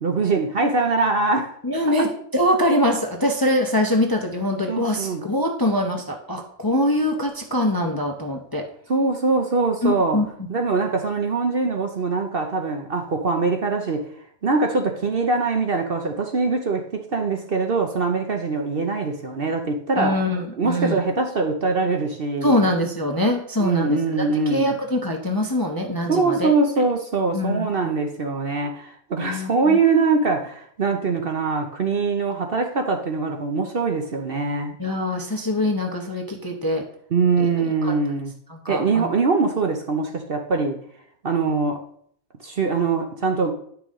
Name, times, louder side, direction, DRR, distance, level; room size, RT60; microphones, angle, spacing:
voice 1, 0.0-1.5 1.9-2.0 4.7-5.2 8.9-10.2 10.5-14.1 14.4-20.2 20.6-22.6 23.6-24.7 26.1-34.8 37.1-38.3 38.7-40.8 41.2-41.8 42.4-43.5, right 4 dB, 45° right, 4 dB, 0.9 m, -23 dB
voice 2, 1.6-8.6 9.8-10.5 20.0-21.0 22.4-26.5 27.3-27.9 29.2-29.8 34.8-36.8 37.4-37.9 38.5-39.1, left 1 dB, 20° left, 2 dB, 0.7 m, -23 dB
10.5 x 6.0 x 3.7 m, 0.64 s
omnidirectional pair, 1.5 m